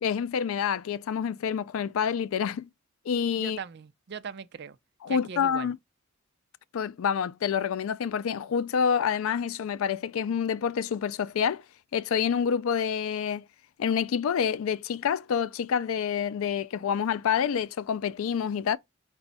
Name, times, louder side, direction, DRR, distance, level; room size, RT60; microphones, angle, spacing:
voice 1, 0.0-2.7 3.1-3.6 5.0-5.8 6.7-11.6 11.9-13.4 13.8-18.8, left 7 dB, 80° left, 0.4 m, -27 dB
voice 2, 3.4-4.8 5.1-5.7, right 6 dB, 55° right, 0.4 m, -39 dB
5.0 x 2.3 x 4.0 m
head